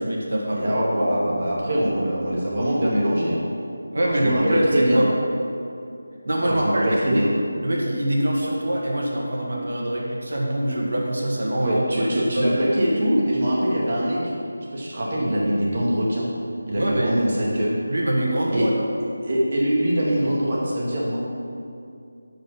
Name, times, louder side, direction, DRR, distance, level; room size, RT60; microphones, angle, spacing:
voice 1, 0.0-0.7 3.9-5.1 6.3-7.2 7.6-12.5 16.7-17.1 17.9-18.7, right 1 dB, 70° right, -2 dB, 2.0 m, -24 dB
voice 2, 0.5-3.5 4.0-5.0 6.4-7.3 11.6-14.2 14.7-16.3 16.7-17.8 18.5-18.7 19.2-21.2, equal, 35° right, -5 dB, 2.0 m, -23 dB
10.5 x 5.1 x 5.8 m, 2.5 s
figure-of-eight pair, 175°, 0 cm